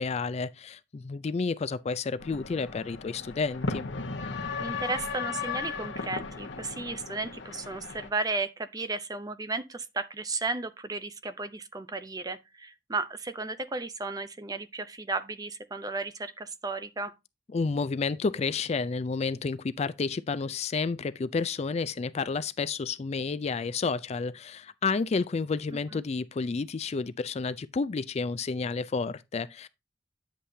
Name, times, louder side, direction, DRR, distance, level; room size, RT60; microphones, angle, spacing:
voice 1, 0.0-3.9 17.5-29.7, left 4 dB, 35° left, 0.4 m, -30 dB
sound 1, 2.2-8.1, left 4 dB, 85° left, 1.1 m, -36 dB
voice 2, 4.6-17.1 25.7-26.0, right 3 dB, 20° right, 0.6 m, -34 dB
10.0 x 7.6 x 2.7 m
head